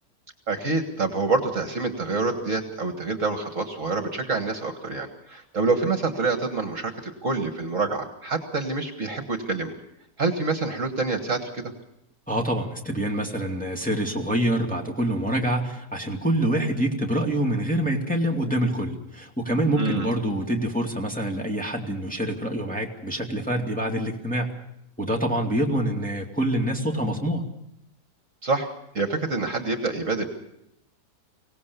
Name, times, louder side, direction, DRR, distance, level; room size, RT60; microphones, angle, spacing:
voice 1, 0.5-9.7 10.2-11.7 19.8-20.1 28.4-28.7 28.9-30.3, right 3 dB, 50° right, 6 dB, 1.9 m, -27 dB
voice 2, 12.3-24.5 25.0-27.4, right 1 dB, 5° left, 0 dB, 2.4 m, -26 dB
24.5 x 18.0 x 6.9 m, 0.79 s
omnidirectional pair, 1.8 m